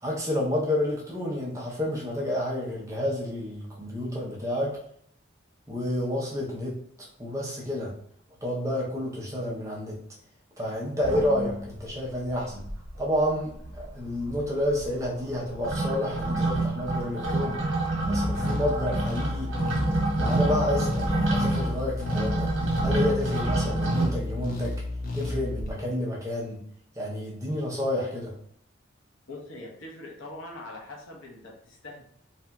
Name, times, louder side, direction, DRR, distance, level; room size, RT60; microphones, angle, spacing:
voice 1, 0.0-4.8 5.7-7.9 8.4-10.0 10.6-12.6 13.0-17.6 18.1-19.5 20.2-22.5 22.8-24.8 25.1-26.6 27.0-28.3, left 1 dB, 15° right, -4 dB, 0.5 m, -30 dB
sound 1, 11.0-11.9 12.3-12.4 12.6-13.2 13.5-24.1, right 2 dB, 70° right, 1.0 m, -28 dB
sound 2, 18.2-25.7, left 2 dB, 45° left, 0.5 m, -32 dB
voice 2, 29.3-32.0, left 2 dB, 80° left, -1 dB, 0.7 m, -42 dB
2.8 x 2.5 x 2.2 m, 0.65 s
head